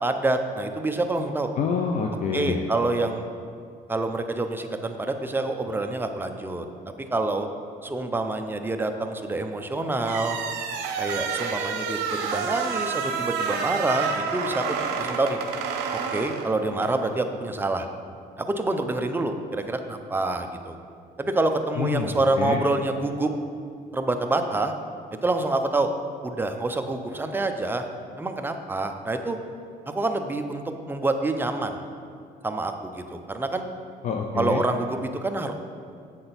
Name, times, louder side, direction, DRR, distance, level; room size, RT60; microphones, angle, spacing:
voice 1, 0.0-1.5 2.3-3.3 3.9-6.7 7.1-7.5 7.8-10.4 11.0-15.4 16.1-17.9 18.4-20.8 21.2-23.3 23.9-24.7 25.2-25.9 26.2-27.8 28.2-29.4 29.9-31.8 32.4-33.7 34.3-35.5, right 2 dB, 10° right, 6 dB, 0.5 m, -27 dB
voice 2, 1.6-2.7 21.8-22.6 34.0-34.6, left 5 dB, 45° left, 2 dB, 0.5 m, -27 dB
sound 1, 10.0-17.0, right 6 dB, 85° right, 0.7 m, -29 dB
7.7 x 6.0 x 4.1 m, 2.3 s
cardioid pair, 110°, 17 cm